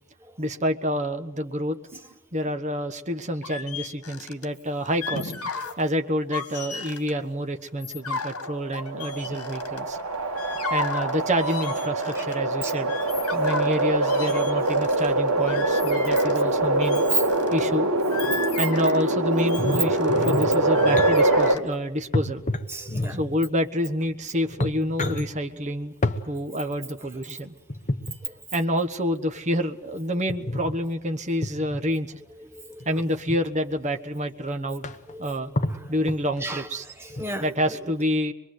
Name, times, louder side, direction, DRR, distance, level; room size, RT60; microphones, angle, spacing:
voice 1, 0.4-2.0 2.3-5.3 5.8-10.0 10.7-12.9 13.3-17.0 17.5-17.9 18.6-22.4 23.1-25.9 26.2-27.5 28.5-32.2 32.8-34.8 35.2-35.5 35.9-36.9 37.4-38.3, equal, 30° right, 1.2 m, -28 dB
sound 1, 3.4-4.5 4.9-5.8 6.2-7.1 7.7-10.0 10.4-12.4 12.7-16.5 16.8-17.6 18.0-20.2 20.7-21.6, left 4 dB, 80° left, 2.0 m, -34 dB
sound 2, 8.3-21.6, right 2 dB, 70° right, 2.2 m, -24 dB
sound 3, 19.5-21.1 22.1-23.4 24.1-24.2 24.5-25.3 26.0-26.2 27.7-28.2 30.3-30.8 31.4-31.8 32.8-33.4 34.1-34.2 34.5-34.6 34.8-35.2 35.6-36.4 37.1-37.2, left 1 dB, 35° left, 1.1 m, -29 dB
voice 2, 22.7-23.2 28.2-28.3 32.5-32.9 35.1-35.3 35.7-35.9 36.4-36.7 37.0-37.5, right 3 dB, 10° right, 1.2 m, -31 dB
25.0 x 22.5 x 8.0 m
head